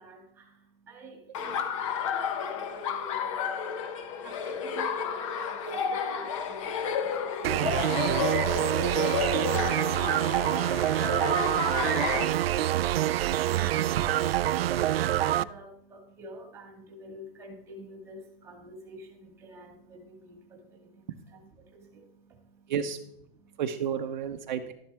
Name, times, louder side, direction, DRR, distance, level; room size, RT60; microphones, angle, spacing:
voice 1, 0.0-22.7 23.4-23.6, right 1 dB, 10° right, 2 dB, 1.9 m, -48 dB
Laughter, 1.3-12.2, left 7 dB, 35° left, 1.0 m, -31 dB
sound 1, 7.4-15.4, right 13 dB, 85° right, 0.5 m, -26 dB
voice 2, 13.5-14.0 22.7-23.0 23.6-24.7, right 8 dB, 50° right, 5 dB, 0.8 m, -31 dB
12.5 x 10.5 x 3.5 m, 0.75 s
hypercardioid pair, 170°, 29 cm